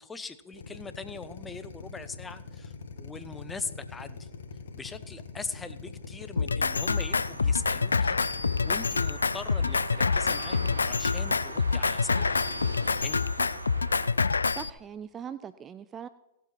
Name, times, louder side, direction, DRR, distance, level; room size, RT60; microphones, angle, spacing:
voice 1, 0.0-4.3 4.7-12.4 12.8-13.2, left 4 dB, 15° left, 12 dB, 0.7 m, -41 dB
Drill, 0.5-12.5, left 5 dB, 65° left, 1.5 m, -43 dB
Drum kit, 6.4-14.7, left 4 dB, 80° left, 0.3 m, -27 dB
sound 1, 6.6-14.1, right 1 dB, 90° right, 1.4 m, -41 dB
voice 2, 14.5-16.1, right 8 dB, 20° right, 14 dB, 0.3 m, -40 dB
16.5 x 7.5 x 4.3 m, 0.99 s
figure-of-eight pair, 105°, 0 cm